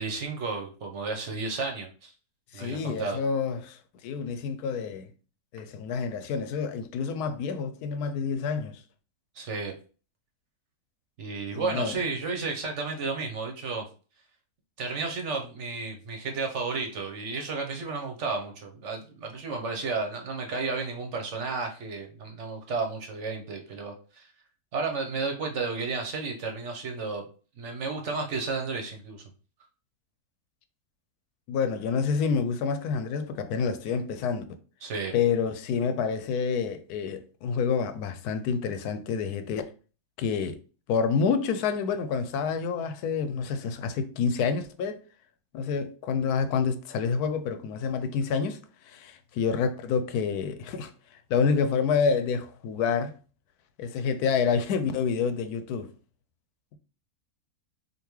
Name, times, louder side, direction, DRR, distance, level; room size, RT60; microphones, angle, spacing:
voice 1, 0.0-2.1 2.5-3.2 9.3-9.7 11.2-13.9 14.8-24.3 24.7-27.2 27.6-29.2 34.8-35.1, right 4 dB, 55° right, 1.0 m, -32 dB
voice 2, 2.5-5.1 5.5-8.8 11.5-12.0 31.5-34.4 35.1-39.6 40.2-40.6 40.9-45.0 45.5-48.6 48.9-50.9 51.3-53.1 53.8-55.9, left 6 dB, 90° left, 1.1 m, -28 dB
5.2 x 2.6 x 3.0 m
omnidirectional pair, 1.6 m